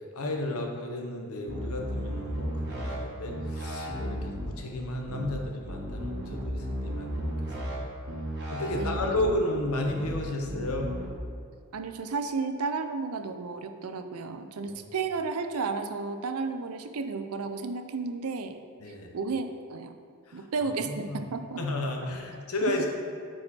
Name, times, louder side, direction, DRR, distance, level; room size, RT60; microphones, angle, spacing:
voice 1, 0.1-7.3 8.5-10.9 18.8-19.1 20.3-20.5 20.9-21.2 21.6-22.9, left 1 dB, 75° left, 2 dB, 1.0 m, -32 dB
sound 1, 1.5-3.0 3.3-4.5 5.1-5.4 5.7-7.8 8.1-9.3 9.9-10.2 10.5-11.1, equal, 50° right, 1.6 m, -34 dB
voice 2, 8.7-9.4 11.7-18.6 19.1-19.9 20.3-21.6 22.7-22.9, right 4 dB, 85° right, 8 dB, 0.5 m, -33 dB
8.6 x 4.8 x 4.3 m, 2.2 s
head